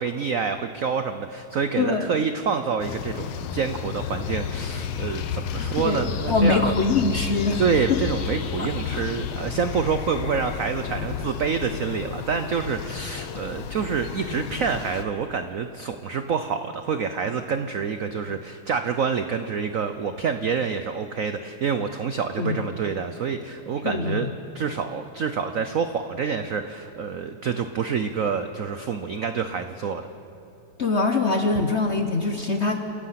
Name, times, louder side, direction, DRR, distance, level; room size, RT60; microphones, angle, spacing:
voice 1, 0.0-6.7 7.6-24.3 24.5-30.0, right 6 dB, 70° right, 8 dB, 0.7 m, -27 dB
voice 2, 1.8-2.1 5.6-7.6 7.9-8.0 8.6-9.0 22.4-22.7 23.8-24.3 30.8-32.9, left 3 dB, 45° left, 5 dB, 0.9 m, -24 dB
sound 1, 2.8-15.0, left 8 dB, 75° left, 1.7 m, -32 dB
28.5 x 15.5 x 5.9 m, 2.8 s
omnidirectional pair, 2.3 m